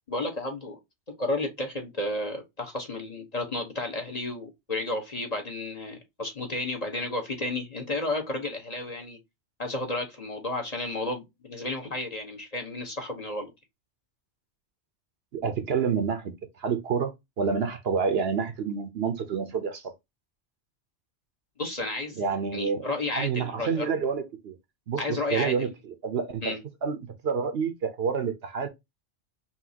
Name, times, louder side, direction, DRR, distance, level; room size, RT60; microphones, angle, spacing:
voice 1, 0.1-0.8 1.2-9.2 9.6-13.5 21.6-22.2 22.5-23.9 25.0-25.7 26.4-26.6, left 2 dB, 35° left, 1.1 m, -32 dB
voice 2, 15.3-19.9 22.2-22.8 23.2-24.5 24.9-26.6 26.8-28.7, right 6 dB, 60° right, 0.9 m, -28 dB
5.7 x 2.7 x 2.8 m
omnidirectional pair, 1.2 m